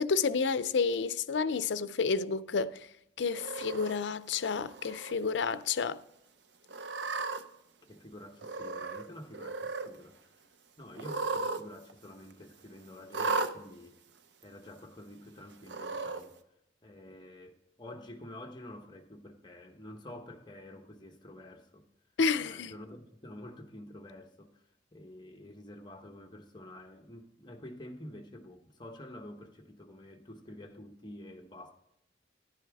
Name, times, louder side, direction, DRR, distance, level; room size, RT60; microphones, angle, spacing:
voice 1, 0.0-2.9 3.2-6.0 22.2-22.7, left 5 dB, 75° left, 0.5 m, -30 dB
Cat, 3.4-4.0 4.7-5.1 5.5-5.6 6.7-7.4 8.4-9.1 9.3-9.9 11.0-11.6 11.9-12.0 13.1-13.5 14.4-14.5 15.6-16.2, right 3 dB, 70° right, 0.7 m, -35 dB
voice 2, 7.9-10.2 10.8-14.0 14.4-16.4 16.8-21.9 22.3-24.6 24.9-31.7, left 1 dB, 25° left, 1.0 m, -48 dB
10.5 x 10.5 x 3.5 m
head